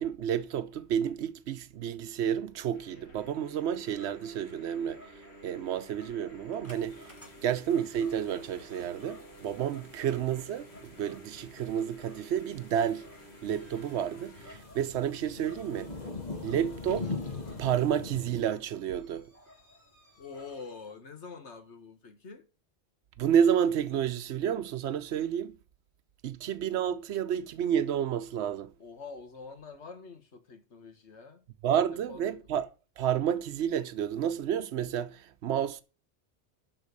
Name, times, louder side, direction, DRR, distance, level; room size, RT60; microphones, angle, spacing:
voice 1, 0.0-5.0 5.4-7.0 7.4-13.1 13.4-16.0 16.4-17.1 17.6-19.2 23.2-25.5 26.2-28.7 31.6-32.7 33.0-35.8, right 9 dB, 75° right, 1.0 m, -30 dB
sound 1, 2.7-14.6, right 1 dB, 70° left, 2.2 m, -53 dB
Dog, 3.2-20.9, left 1 dB, 10° left, 3.8 m, -56 dB
sound 2, 6.7-18.4, left 3 dB, 40° left, 1.6 m, -44 dB
voice 2, 20.2-22.5 28.8-31.4 31.9-32.4, left 4 dB, 90° left, 1.7 m, -46 dB
12.0 x 4.1 x 6.4 m
omnidirectional pair, 1.1 m